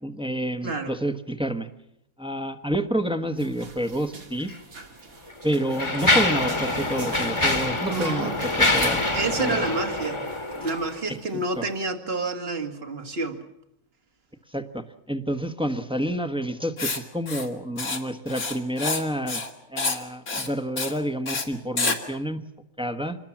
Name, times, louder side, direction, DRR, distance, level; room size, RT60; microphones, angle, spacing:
voice 1, 0.0-1.7 2.2-4.5 5.4-9.7 11.1-11.2 11.6-11.7 14.5-19.4 19.7-22.4 22.8-23.2, right 1 dB, 5° right, 8 dB, 1.3 m, -29 dB
voice 2, 0.6-0.9 7.9-8.4 9.1-10.3 10.6-13.4, right 3 dB, 45° right, 6 dB, 2.3 m, -29 dB
sound 1, 3.4-11.0, right 3 dB, 85° right, 2.6 m, -43 dB
Mechanisms, 4.4-4.6 5.3-11.0, left 2 dB, 20° left, 1.6 m, -25 dB
Writing, 16.8-17.0 17.3-17.5 17.8-18.0 18.3-19.0 19.3-19.5 19.8-20.0 20.3-20.5 20.8-20.9 21.3-21.4 21.8-22.0, left 3 dB, 85° left, 3.0 m, -28 dB
26.0 x 21.0 x 7.3 m, 0.80 s
omnidirectional pair, 1.5 m